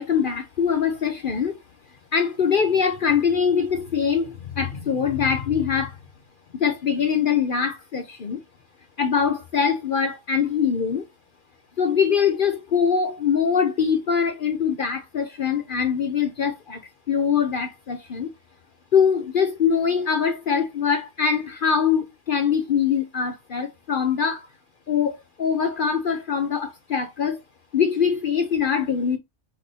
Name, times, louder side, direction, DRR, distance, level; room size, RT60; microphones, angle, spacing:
voice 1, 0.0-1.6 2.1-6.0 6.6-8.4 9.0-11.1 11.8-16.8 17.1-18.3 18.9-24.4 24.9-27.4 27.7-29.2, left 7 dB, 50° left, 0.7 m, -23 dB
5.9 x 2.6 x 3.3 m
omnidirectional pair, 1.3 m